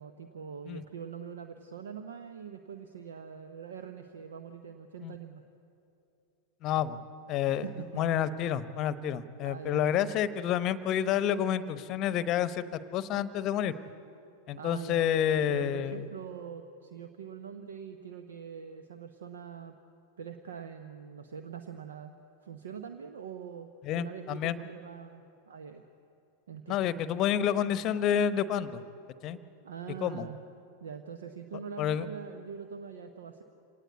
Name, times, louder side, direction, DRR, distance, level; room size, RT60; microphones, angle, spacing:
voice 1, 0.0-5.4 7.4-8.3 9.4-9.9 14.6-15.0 15.5-19.8 20.2-22.1 22.4-23.7 23.9-25.9 26.5-26.9 29.6-30.4 30.8-33.4, right 7 dB, 65° right, 8 dB, 0.9 m, -43 dB
voice 2, 6.6-7.0 7.3-7.6 8.0-12.6 12.9-13.7 14.5-16.0 23.8-24.6 26.7-28.8 29.2-29.4 30.0-30.3 31.8-32.0, left 9 dB, 35° left, 15 dB, 0.9 m, -29 dB
25.5 x 18.5 x 8.4 m, 2.7 s
figure-of-eight pair, 90°, 0 cm